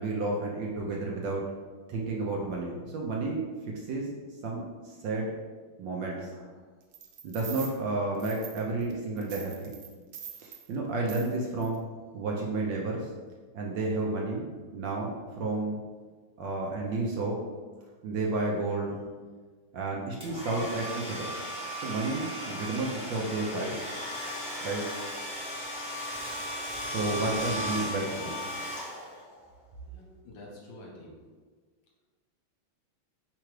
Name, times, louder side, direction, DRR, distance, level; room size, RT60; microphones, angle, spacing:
voice 1, 0.0-1.4 1.9-3.4 3.9-4.1 4.4-5.3 5.8-6.5 7.2-9.7 10.4-11.8 12.1-13.1 13.5-15.8 16.4-17.3 18.0-19.0 19.7-21.4 21.8-23.9 24.6-24.9 25.7-26.0 26.9-28.3, right 2 dB, 70° right, -2 dB, 1.2 m, -31 dB
sound 1, 6.9-7.7 8.2-8.9 9.2-10.6 11.1-11.3 11.6-11.8, right 8 dB, 90° right, 1.6 m, -43 dB
Domestic sounds home sounds, 20.2-29.4, equal, 5° right, 0.7 m, -36 dB
voice 2, 29.9-31.1, left 1 dB, 70° left, -1 dB, 1.5 m, -47 dB
4.5 x 3.8 x 3.1 m, 1.5 s
omnidirectional pair, 2.4 m